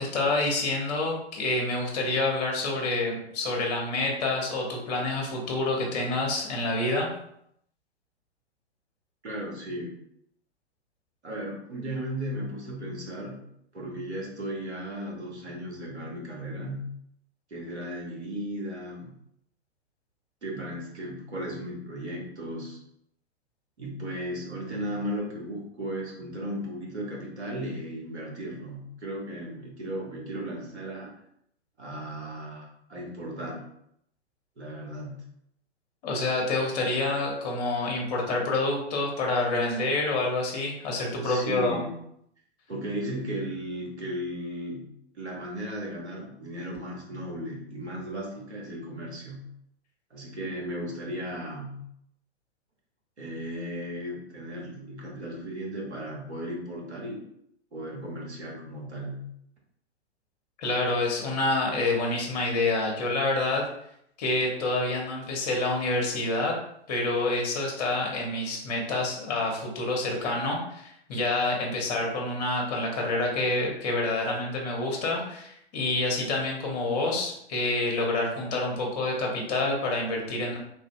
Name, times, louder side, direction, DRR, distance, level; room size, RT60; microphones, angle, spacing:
voice 1, 0.0-7.1 36.0-41.8 60.6-63.7 64.2-66.5 66.9-80.6, left 2 dB, 35° left, 0 dB, 0.8 m, -27 dB
voice 2, 9.2-9.9 11.2-13.4 13.7-16.9 17.5-19.1 20.4-22.8 23.8-31.1 31.8-33.6 34.6-35.2 41.2-41.9 42.7-44.9 45.1-49.5 50.1-51.8 53.2-57.2 57.7-59.3, equal, 75° right, -2 dB, 1.1 m, -35 dB
3.0 x 2.5 x 2.2 m, 0.72 s
figure-of-eight pair, 105°, 34 cm